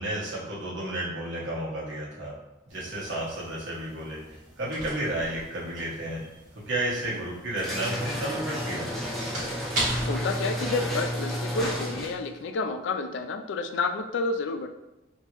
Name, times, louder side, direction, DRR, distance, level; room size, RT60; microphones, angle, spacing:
voice 1, 0.0-2.3 2.7-6.2 6.7-8.9, right 1 dB, 65° right, -6 dB, 1.2 m, -32 dB
sound 1, 2.7-11.6, right 1 dB, 40° right, 1.5 m, -39 dB
sound 2, 7.6-12.3, equal, ahead, 0.5 m, -31 dB
voice 2, 9.9-14.7, left 3 dB, 65° left, 7 dB, 0.3 m, -30 dB
3.6 x 2.7 x 2.9 m, 0.97 s
head